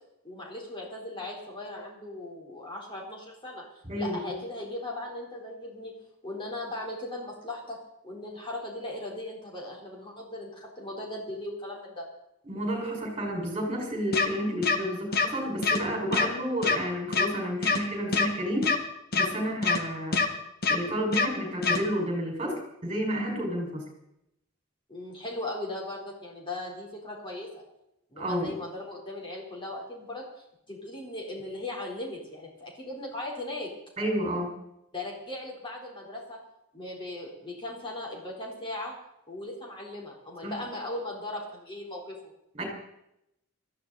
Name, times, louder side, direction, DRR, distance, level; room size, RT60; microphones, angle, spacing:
voice 1, 0.2-3.6 4.0-5.9 6.2-7.8 8.0-12.1 24.9-27.5 28.1-30.2 30.7-33.7 34.9-36.4 36.7-38.9 39.3-42.3, left 1 dB, 25° left, -2 dB, 4.0 m, -38 dB
voice 2, 3.9-4.3 12.5-18.7 19.1-20.2 20.7-23.8 28.2-28.5 34.0-34.5 40.4-40.5 42.5-42.6, equal, 30° right, 0 dB, 5.4 m, -31 dB
sound 1, 14.1-14.3 14.6-14.8 15.1-15.3 15.6-15.8 16.1-16.3 16.6-16.8 17.1-17.3 17.6-17.8 18.1-18.3 18.6-18.8 19.1-19.3 19.6-19.8 20.1-20.3 20.6-20.8 21.1-21.3 21.6-21.8, left 4 dB, 45° left, 1.4 m, -24 dB
19.5 x 14.0 x 4.2 m, 0.82 s
head